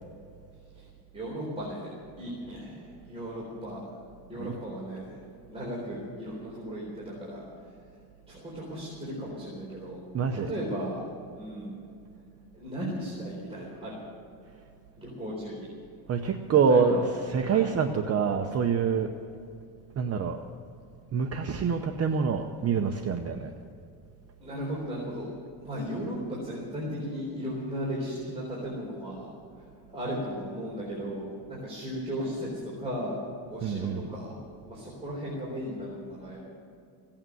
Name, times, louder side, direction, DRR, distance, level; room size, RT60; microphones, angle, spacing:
voice 1, 1.1-1.9 2.2-3.8 4.3-7.4 8.3-10.0 10.3-11.1 11.4-11.7 12.5-14.0 15.0-15.7 16.5-17.0 17.4-17.7 24.4-25.3 25.6-29.3 29.6-29.7 29.9-33.2 33.5-34.4 34.7-36.5, equal, 15° right, -6 dB, 4.1 m, -36 dB
voice 2, 10.1-10.6 16.1-19.1 20.0-20.4 21.1-23.5 33.6-34.1, right 6 dB, 35° right, 5 dB, 0.8 m, -26 dB
17.0 x 8.8 x 9.3 m, 2.4 s
cardioid pair, 155°, 44 cm